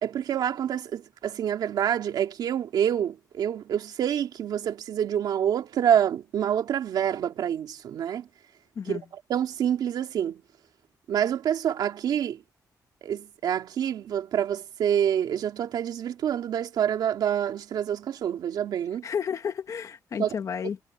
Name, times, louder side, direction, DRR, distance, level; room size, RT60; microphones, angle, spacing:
voice 1, 0.0-8.3 8.9-9.0 9.3-10.4 11.1-12.4 13.0-19.1 20.2-20.3, right 9 dB, 85° right, 2.5 m, -27 dB
voice 2, 19.0-20.8, left 7 dB, 50° left, 1.5 m, -31 dB
wide cardioid pair, 140°, 7 cm